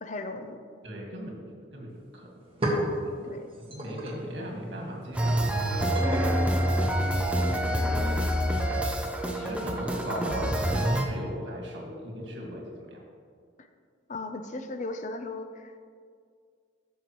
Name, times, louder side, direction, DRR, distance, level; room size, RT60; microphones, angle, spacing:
voice 1, 0.0-0.6 3.2-3.5 8.0-8.3 13.6-13.7 14.1-15.8, left 2 dB, 45° left, 8 dB, 0.6 m, -37 dB
voice 2, 0.8-1.4 1.7-2.3 3.6-7.1 9.3-13.0, equal, 80° right, -1 dB, 1.9 m, -37 dB
sound 1, 1.9-2.0 2.3-7.5, right 1 dB, 30° right, 1.4 m, -35 dB
sound 2, 5.1-11.1, equal, 5° right, 0.6 m, -26 dB
13.0 x 5.7 x 3.0 m, 2.1 s
head